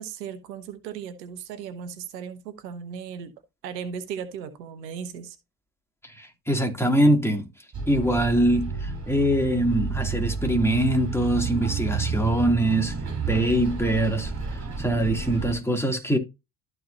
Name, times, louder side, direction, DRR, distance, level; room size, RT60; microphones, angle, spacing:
voice 1, 0.0-3.3 3.6-5.4, right 7 dB, 85° right, 1.2 m, -36 dB
voice 2, 6.0-7.5 7.9-12.9 13.3-16.2, right 1 dB, 5° left, 2.8 m, -23 dB
Bus, 7.7-15.6, right 5 dB, 35° right, 5.8 m, -30 dB
13.5 x 4.7 x 2.8 m
hypercardioid pair, 55°, 48 cm